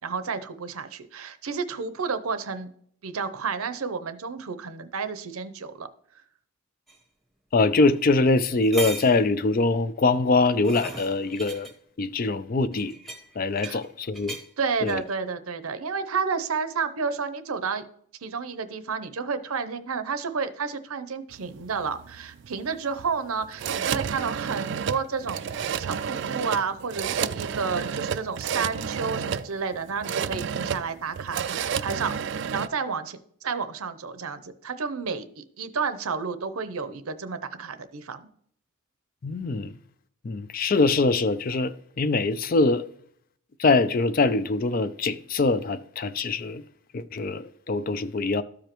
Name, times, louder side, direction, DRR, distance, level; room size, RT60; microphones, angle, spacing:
voice 1, 0.0-2.7 3.0-5.9 13.6-13.8 14.6-17.9 18.2-25.5 25.8-32.2 32.5-38.3, right 5 dB, 80° right, 0.7 m, -31 dB
sound 1, 6.9-7.0 7.9-8.0 8.4-9.2 10.2-11.7 12.7-13.9 14.1-14.5 14.9-15.1, right 2 dB, ahead, 0.9 m, -38 dB
voice 2, 7.5-11.7 12.0-12.9 13.4-14.4 14.8-15.0 39.2-39.7 40.2-42.8 43.6-46.6 46.9-48.4, left 3 dB, 40° left, 0.4 m, -23 dB
sound 2, 21.3-32.7, right 7 dB, 55° right, 0.3 m, -31 dB
13.0 x 5.0 x 3.0 m
head